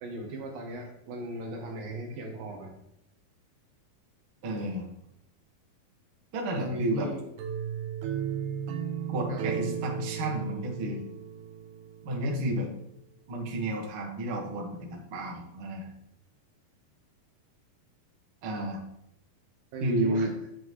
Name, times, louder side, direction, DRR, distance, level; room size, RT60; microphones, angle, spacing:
voice 1, 0.0-2.8 6.6-7.3 9.3-9.5 19.7-20.4, right 2 dB, 70° right, 1 dB, 2.9 m, -38 dB
voice 2, 4.4-4.9 6.3-7.1 9.1-11.0 12.0-12.7 13.3-15.9 18.4-18.8 19.8-20.3, right 1 dB, 45° right, -1 dB, 2.0 m, -31 dB
sound 1, 7.4-12.3, right 9 dB, 90° right, 2.9 m, -35 dB
10.5 x 7.5 x 3.2 m, 0.79 s
omnidirectional pair, 4.4 m